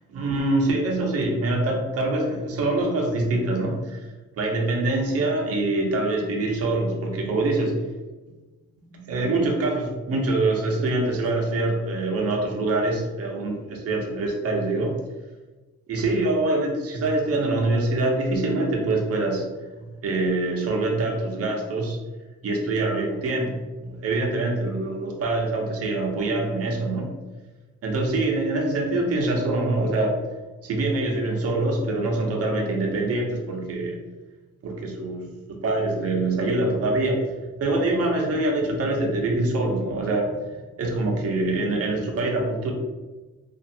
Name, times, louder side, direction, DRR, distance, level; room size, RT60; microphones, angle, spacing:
voice 1, 0.1-4.1 4.4-7.9 8.8-14.9 15.9-19.5 20.0-22.0 22.4-27.1 27.8-30.2 30.6-34.0 34.6-37.3 37.6-40.5 40.8-42.7, right 2 dB, 50° right, 0 dB, 0.7 m, -24 dB
2.5 x 2.4 x 2.7 m, 1.2 s
cardioid pair, 90°, 30 cm